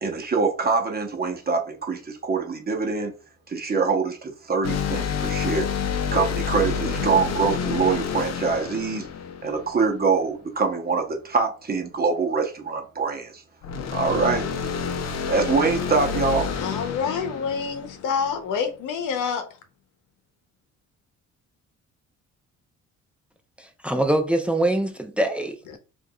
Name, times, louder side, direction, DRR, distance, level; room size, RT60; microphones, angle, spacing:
voice 1, 0.0-3.1 3.5-5.7 6.1-9.1 9.4-13.4 13.9-14.5 15.3-16.5, right 4 dB, 30° right, 0.9 m, -24 dB
sound 1, 4.6-10.1 13.6-18.4, left 6 dB, 60° left, 0.6 m, -29 dB
voice 2, 16.6-19.4, left 6 dB, 90° left, 0.8 m, -27 dB
voice 3, 23.6-25.8, right 1 dB, 5° right, 0.6 m, -24 dB
4.6 x 2.5 x 2.3 m
cardioid pair, 90°, 30 cm